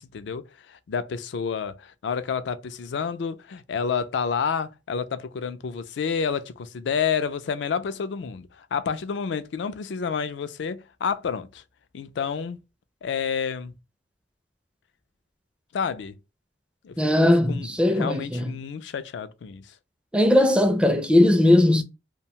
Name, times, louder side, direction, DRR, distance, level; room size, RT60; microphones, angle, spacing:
voice 1, 0.0-11.6 11.9-12.6 13.0-13.7 15.7-16.1 16.8-19.7, left 6 dB, 70° left, 0.4 m, -29 dB
voice 2, 17.0-18.5 20.1-21.8, left 1 dB, 5° right, 0.4 m, -19 dB
2.6 x 2.2 x 2.8 m
head